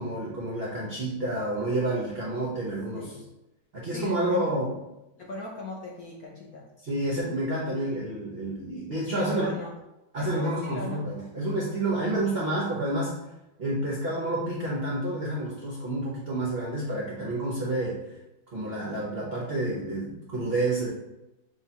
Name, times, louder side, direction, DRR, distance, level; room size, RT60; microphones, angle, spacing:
voice 1, 0.0-3.1 3.7-4.8 6.8-9.5 10.1-13.1 13.6-18.0 18.5-20.9, right 1 dB, 85° right, -4 dB, 0.5 m, -29 dB
voice 2, 3.9-4.5 5.2-6.7 7.7-7.9 9.1-9.7 10.2-11.1, left 2 dB, 70° left, -2 dB, 0.9 m, -38 dB
6.3 x 2.4 x 2.8 m, 0.92 s
omnidirectional pair, 2.2 m